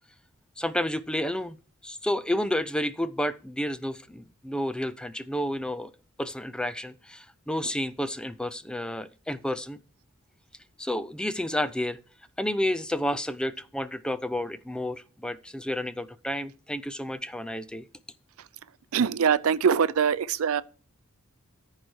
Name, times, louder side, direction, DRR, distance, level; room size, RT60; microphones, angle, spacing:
voice 1, 0.6-1.6 1.8-5.9 6.2-9.8 10.8-12.0 12.4-17.8, left 1 dB, 5° left, 0.4 m, -30 dB
voice 2, 18.9-20.6, right 7 dB, 75° right, 0.5 m, -23 dB
14.0 x 4.7 x 4.6 m
head